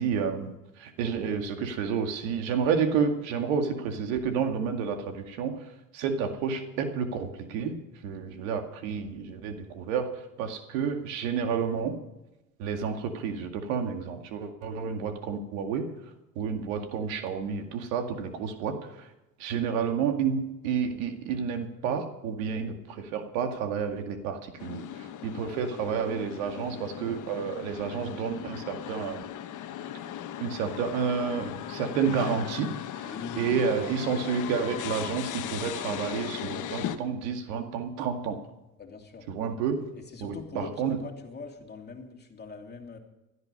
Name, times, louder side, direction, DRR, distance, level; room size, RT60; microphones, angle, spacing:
voice 1, 0.0-5.5 5.9-7.8 8.0-10.1 10.4-11.9 12.6-15.8 16.4-19.1 19.4-29.2 30.4-32.7 33.0-38.4 39.3-39.8 40.2-41.0, right 6 dB, 80° right, 5 dB, 2.2 m, -30 dB
sound 1, 24.6-37.0, left 10 dB, 50° left, 1.2 m, -38 dB
voice 2, 33.0-33.6 38.8-39.2 39.9-43.0, left 4 dB, 25° left, 2 dB, 2.9 m, -42 dB
16.5 x 12.5 x 5.4 m, 0.95 s
supercardioid pair, 100°, 39 cm